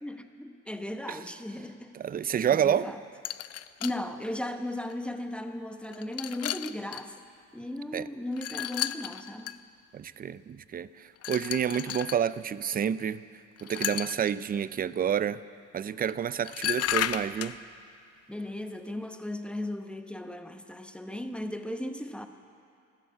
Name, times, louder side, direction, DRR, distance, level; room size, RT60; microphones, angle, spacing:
voice 1, 0.0-3.0 3.8-7.1 7.5-9.6 18.3-22.3, left 1 dB, 5° left, 7 dB, 0.9 m, -36 dB
voice 2, 1.9-2.9 7.9-8.1 9.9-13.2 13.6-15.4 15.7-17.6, right 8 dB, 30° right, 16 dB, 0.4 m, -29 dB
sound 1, 3.2-4.0 4.9-5.0 5.8-7.0 8.3-9.6 11.2-12.2 13.6-14.3 16.0-16.1 16.4-17.6, left 12 dB, 55° left, 0.5 m, -33 dB
12.5 x 11.5 x 8.3 m, 2.4 s
cardioid pair, 90°, 30 cm